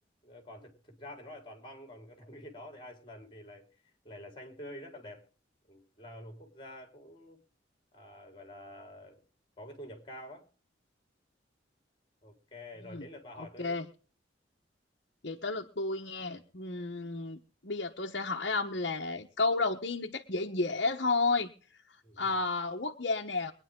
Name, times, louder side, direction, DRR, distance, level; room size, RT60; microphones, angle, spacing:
voice 1, 0.2-3.7 4.0-5.2 5.7-7.4 7.9-9.2 9.6-10.5 12.2-13.8 22.0-22.3, left 1 dB, 25° left, 5 dB, 4.4 m, -48 dB
voice 2, 13.4-13.8 15.2-21.5 22.2-23.5, left 3 dB, 60° left, 1 dB, 1.3 m, -32 dB
23.5 x 10.0 x 3.7 m, 0.40 s
head